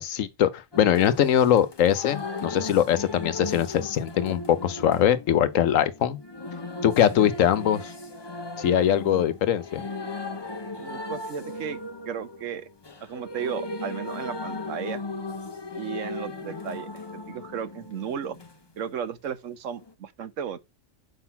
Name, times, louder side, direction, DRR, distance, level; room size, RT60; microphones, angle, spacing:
voice 1, 0.0-6.2 6.8-7.9 8.6-9.8, left 10 dB, 80° left, 1.2 m, -22 dB
sound 1, 0.7-18.5 19.8-19.9, left 3 dB, 25° left, 0.6 m, -37 dB
voice 2, 10.8-11.8 12.1-12.7 13.0-15.0 15.8-18.4 18.8-20.6, right 8 dB, 75° right, 1.2 m, -34 dB
5.8 x 5.2 x 5.7 m
omnidirectional pair, 1.3 m